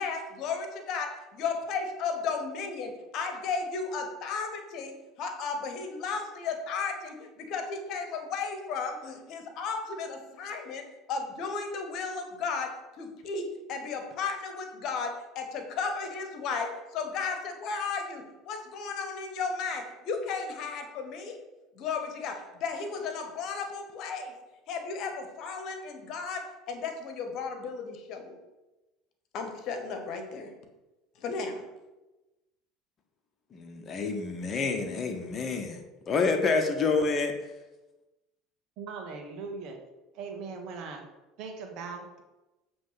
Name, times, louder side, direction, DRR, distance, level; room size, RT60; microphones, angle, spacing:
voice 1, 0.0-21.4 21.7-24.4 24.7-28.4 29.3-30.5 31.2-31.7, left 5 dB, 60° left, 5 dB, 1.3 m, -34 dB
voice 2, 33.5-37.3, left 4 dB, 40° left, 5 dB, 1.2 m, -28 dB
voice 3, 38.8-39.8 40.1-41.0 41.4-42.2, right 4 dB, 60° right, 3 dB, 1.4 m, -39 dB
7.5 x 3.4 x 5.8 m, 1.1 s
hypercardioid pair, 80°, 0 cm